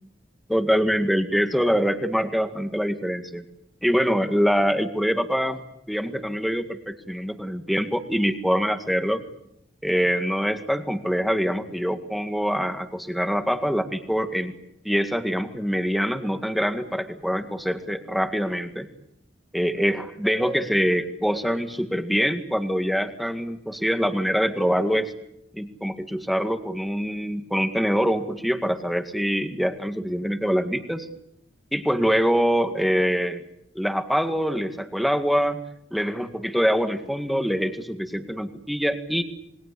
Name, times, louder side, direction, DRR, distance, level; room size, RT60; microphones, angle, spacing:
voice 1, 0.5-3.4 3.8-5.6 5.9-9.2 9.8-14.5 14.8-18.9 19.5-25.1 25.5-31.1 31.7-33.4 33.8-35.6 35.9-39.2, equal, ahead, 7 dB, 2.0 m, -24 dB
27.5 x 22.5 x 8.5 m, 0.76 s
head